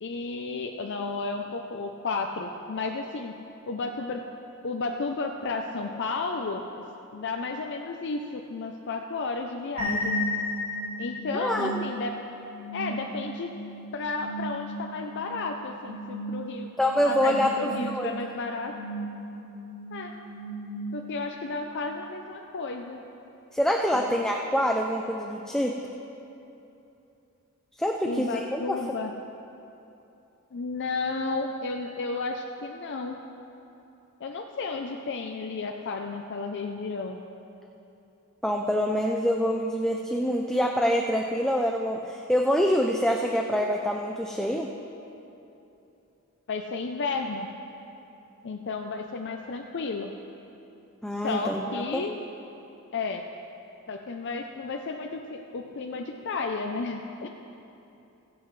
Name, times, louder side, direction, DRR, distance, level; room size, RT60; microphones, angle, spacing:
voice 1, 0.0-3.3 3.7-4.2 4.6-6.6 7.1-10.2 11.0-12.1 12.7-13.5 13.9-16.7 17.0-18.7 19.9-20.1 20.9-23.0 23.9-24.2 28.0-29.1 30.5-33.2 34.2-37.2 46.5-47.5 48.4-50.1 51.2-52.2 52.9-53.2 53.9-57.3, left 3 dB, 55° left, 3 dB, 0.5 m, -32 dB
sound 1, 9.8-21.4, equal, 90° right, 2.7 m, -35 dB
voice 2, 11.3-11.8 16.8-18.1 23.5-25.7 27.8-28.8 38.4-44.7 51.0-52.0, equal, 5° left, 1 dB, 0.4 m, -26 dB
20.5 x 8.0 x 3.2 m, 2.9 s
head